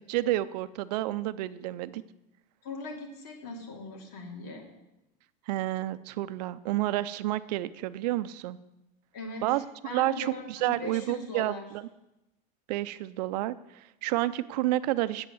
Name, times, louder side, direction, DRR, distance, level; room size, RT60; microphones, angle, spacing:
voice 1, 0.0-2.0 5.5-8.6 9.4-9.6 9.9-11.8 12.7-15.3, right 16 dB, 75° right, 15 dB, 0.5 m, -30 dB
voice 2, 2.6-4.6 9.1-11.6, left 2 dB, 70° left, 1 dB, 2.8 m, -40 dB
8.6 x 8.0 x 7.1 m, 0.93 s
supercardioid pair, 165°, 21 cm